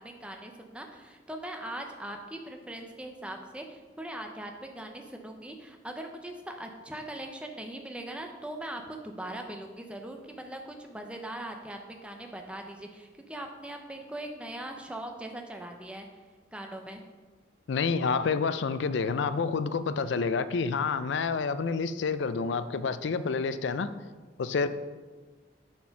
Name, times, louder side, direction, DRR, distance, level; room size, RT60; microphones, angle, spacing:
voice 1, 0.0-16.1 16.5-17.0, right 1 dB, 5° right, 0.6 m, -40 dB
voice 2, 17.7-23.9 24.4-24.7, left 5 dB, 75° left, 0.4 m, -28 dB
7.4 x 4.4 x 5.8 m
head